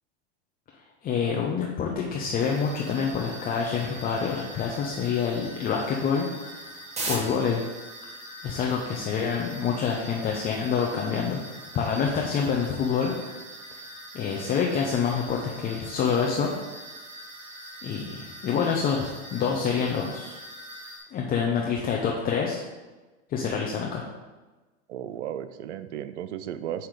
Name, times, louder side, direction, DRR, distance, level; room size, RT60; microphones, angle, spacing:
voice 1, 1.0-6.8 7.1-7.6 8.4-13.4 14.1-16.5 17.8-20.4 21.1-22.6 23.3-24.1, left 6 dB, 25° left, -1 dB, 0.7 m, -27 dB
sound 1, 2.4-21.0, right 1 dB, 20° right, 1.3 m, -41 dB
voice 2, 24.9-26.9, right 10 dB, 90° right, 11 dB, 0.6 m, -34 dB
7.7 x 2.9 x 5.1 m, 1.2 s
hypercardioid pair, 120°, 34 cm